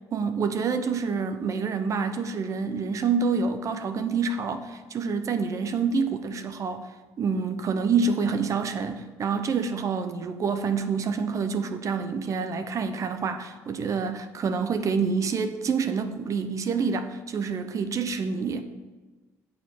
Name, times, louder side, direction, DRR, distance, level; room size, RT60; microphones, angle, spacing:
voice 1, 0.1-6.9 7.2-18.6, right 5 dB, 45° right, 8 dB, 0.7 m, -27 dB
7.3 x 4.7 x 6.2 m, 1.3 s
supercardioid pair, 75°, 7 cm